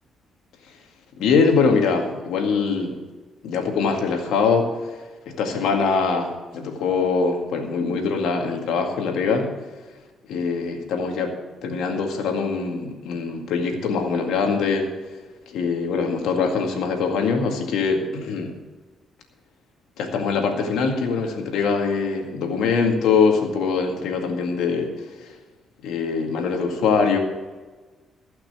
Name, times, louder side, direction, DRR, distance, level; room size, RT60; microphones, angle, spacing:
voice 1, 1.2-2.9 3.4-4.9 5.4-9.5 10.3-11.3 11.6-14.9 15.5-18.5 20.0-25.4 25.8-27.2, left 5 dB, 85° left, 3 dB, 2.1 m, -23 dB
15.5 x 5.9 x 8.0 m, 1.3 s
cardioid pair, 90°, 0 cm